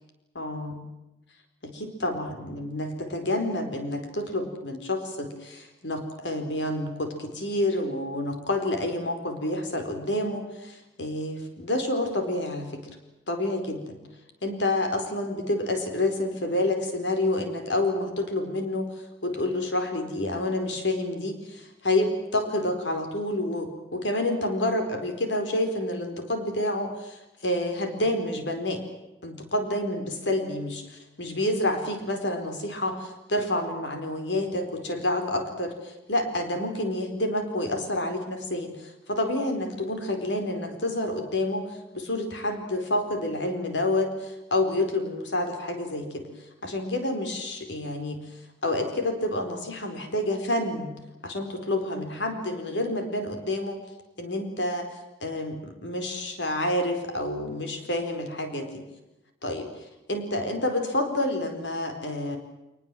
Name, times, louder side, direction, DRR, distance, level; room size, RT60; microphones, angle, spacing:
voice 1, 0.3-0.8 1.6-12.8 13.3-14.0 14.4-18.9 19.2-28.8 29.2-46.3 46.6-48.2 48.6-50.9 51.2-53.8 54.2-54.9 55.2-58.8 59.4-59.7 60.1-62.4, left 1 dB, 90° left, 6 dB, 4.6 m, -28 dB
27.0 x 20.0 x 7.8 m, 0.98 s
head